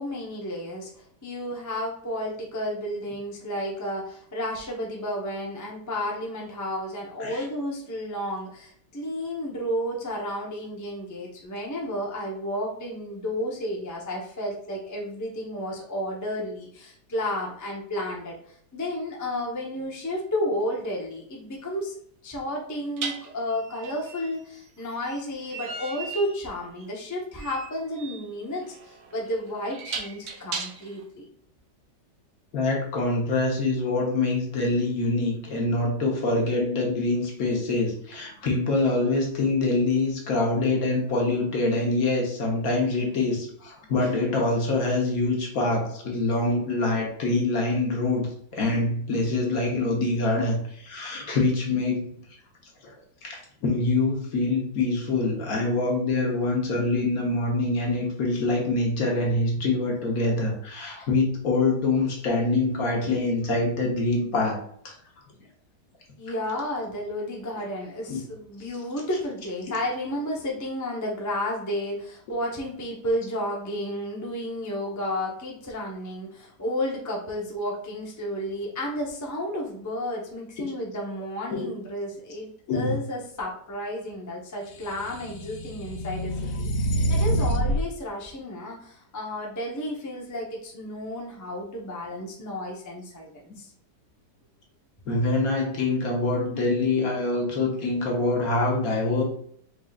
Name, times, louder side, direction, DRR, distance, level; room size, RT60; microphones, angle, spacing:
voice 1, 0.0-21.9 22.2-31.2 66.2-86.7 87.1-93.7, left 1 dB, 15° left, -2 dB, 0.6 m, -32 dB
sound 1, 20.6-20.7 23.0-31.0, right 4 dB, 60° right, 0.7 m, -38 dB
voice 2, 32.5-48.3 48.5-52.1 53.2-64.7 68.1-68.2 81.5-81.7 82.7-82.9 95.1-99.2, left 2 dB, 60° left, -1 dB, 1.5 m, -25 dB
sound 2, 84.9-87.9, right 1 dB, 80° left, 0.6 m, -26 dB
5.0 x 3.8 x 2.4 m, 0.63 s
omnidirectional pair, 1.8 m